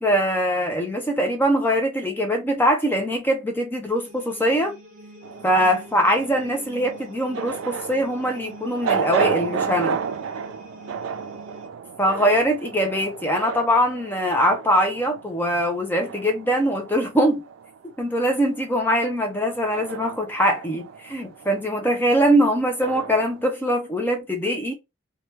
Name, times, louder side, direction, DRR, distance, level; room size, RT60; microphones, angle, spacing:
voice 1, 0.0-4.7 5.4-10.0 12.0-17.4 18.0-24.7, equal, 10° left, 0.6 m, -22 dB
sound 1, 3.8-11.7, equal, 40° right, 0.8 m, -45 dB
sound 2, 5.2-17.8 18.1-23.4, right 6 dB, 85° right, 0.3 m, -32 dB
3.0 x 2.3 x 3.1 m
head